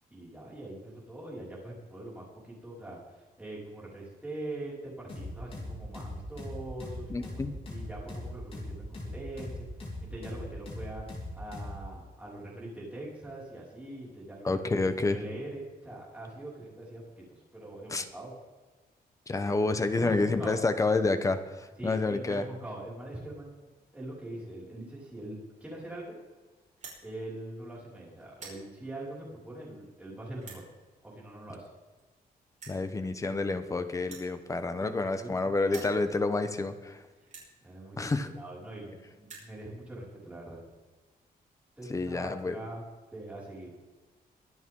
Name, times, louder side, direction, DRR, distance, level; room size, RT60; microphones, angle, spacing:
voice 1, 0.1-7.3 7.7-9.7 10.0-11.1 11.4-14.6 15.0-18.3 20.0-20.6 21.8-26.1 27.0-30.7 31.0-31.7 34.8-35.9 37.6-40.6 41.8-42.9 43.1-43.7, right 1 dB, 10° right, -6 dB, 5.6 m, -43 dB
sound 1, 5.1-11.8, left 1 dB, 35° left, 4.4 m, -40 dB
voice 2, 7.1-7.5 14.4-15.2 17.9-18.0 19.3-22.5 32.7-37.0 38.0-38.3 41.9-42.6, left 3 dB, 20° left, 9 dB, 1.0 m, -29 dB
sound 2, 26.8-27.0 27.7-27.9 28.2-28.6 29.4-29.5 30.4-30.6 31.7-31.8 32.0-32.1 32.6-32.8 34.0-35.3 35.6-36.0 36.7-36.8 37.3-37.5 38.4-38.5 38.7-38.8 39.1-39.5, right 4 dB, 50° right, 5.3 m, -47 dB
23.5 x 9.2 x 3.8 m, 1.3 s
wide cardioid pair, 175°, 16 cm